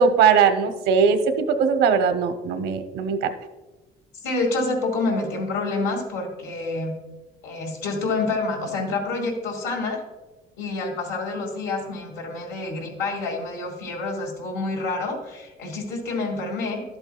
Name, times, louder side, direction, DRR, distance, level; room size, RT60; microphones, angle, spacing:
voice 1, 0.0-3.3, right 6 dB, 80° right, 8 dB, 0.8 m, -20 dB
voice 2, 4.2-6.9 7.4-10.0 10.6-16.8, left 3 dB, 85° left, 1 dB, 2.2 m, -28 dB
12.0 x 7.9 x 2.3 m, 1.1 s
cardioid pair, 110°, 17 cm